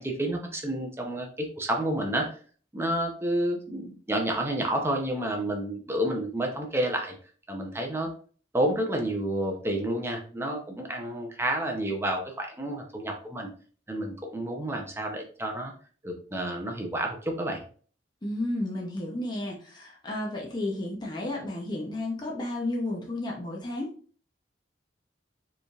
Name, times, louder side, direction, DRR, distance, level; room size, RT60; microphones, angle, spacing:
voice 1, 0.0-2.3 2.7-7.1 7.5-8.1 8.5-13.5 13.9-15.7 16.0-17.6, right 1 dB, 15° right, 2 dB, 0.6 m, -30 dB
voice 2, 18.2-23.9, left 1 dB, 25° left, -2 dB, 0.7 m, -32 dB
4.7 x 3.2 x 2.4 m, 0.42 s
head